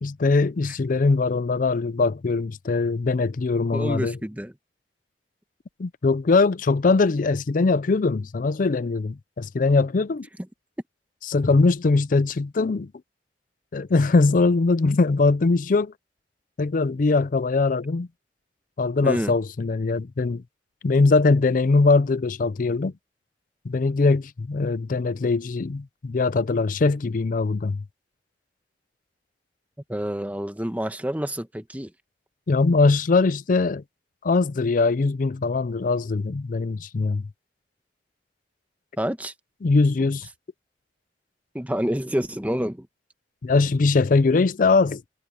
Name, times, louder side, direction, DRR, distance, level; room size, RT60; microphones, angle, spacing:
voice 1, 0.0-4.2 5.8-10.3 11.3-12.9 13.7-15.9 16.6-18.1 18.8-20.4 20.8-22.9 23.6-27.8 32.5-33.8 34.2-37.2 39.6-40.3 43.4-45.0, left 3 dB, 50° left, 0.5 m, -21 dB
voice 2, 3.7-4.5 19.0-19.3 29.9-31.9 39.0-39.3 41.5-42.9, equal, 10° right, 1.2 m, -28 dB
head